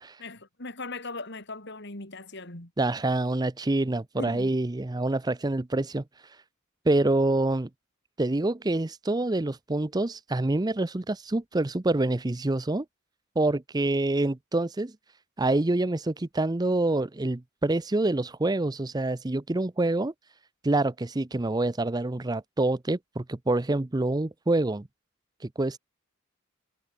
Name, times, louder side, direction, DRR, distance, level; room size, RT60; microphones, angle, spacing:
voice 1, 0.2-2.7 4.2-4.5, left 3 dB, 55° left, 4.6 m, -39 dB
voice 2, 2.8-6.0 6.9-7.7 8.2-12.8 13.4-14.9 15.4-20.1 20.6-24.9 25.4-25.8, right 2 dB, 20° right, 0.6 m, -26 dB
head